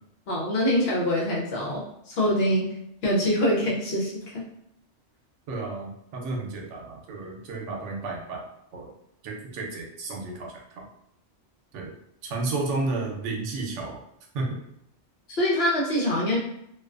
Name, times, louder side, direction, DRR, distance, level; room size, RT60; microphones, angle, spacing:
voice 1, 0.3-2.7 3.0-4.5 15.3-16.4, equal, 60° left, -3 dB, 0.9 m, -24 dB
voice 2, 5.5-8.5 8.7-8.9 9.2-10.9 11.7-11.9 12.2-14.0 14.3-14.6, right 3 dB, 85° right, 0 dB, 0.9 m, -32 dB
2.4 x 2.3 x 2.3 m, 0.74 s
omnidirectional pair, 1.2 m